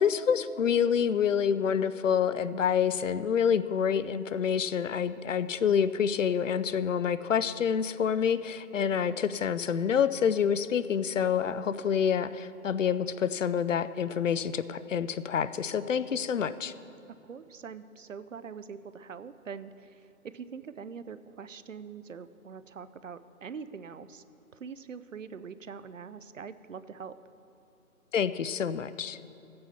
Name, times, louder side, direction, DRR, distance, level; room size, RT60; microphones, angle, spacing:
voice 1, 0.0-16.7 28.1-29.2, left 7 dB, 60° left, 14 dB, 0.5 m, -27 dB
voice 2, 17.2-24.2 24.5-27.2, right 6 dB, 60° right, 14 dB, 0.5 m, -43 dB
14.5 x 8.6 x 4.3 m, 2.8 s
figure-of-eight pair, 165°, 43 cm